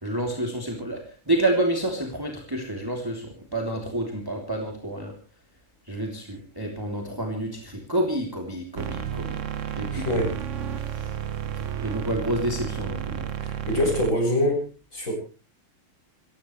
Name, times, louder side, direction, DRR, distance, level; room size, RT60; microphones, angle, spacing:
voice 1, 0.0-5.1 5.9-9.4 9.7-10.0 10.9-11.1 11.6-13.3, right 1 dB, 10° right, 1 dB, 3.3 m, -29 dB
sound 1, 8.7-14.1, right 9 dB, 50° right, 0.9 m, -32 dB
voice 2, 9.9-10.4 13.4-14.7 14.9-15.1, left 1 dB, 35° left, 2 dB, 8.5 m, -24 dB
28.0 x 15.5 x 3.3 m, 0.35 s
omnidirectional pair, 2.4 m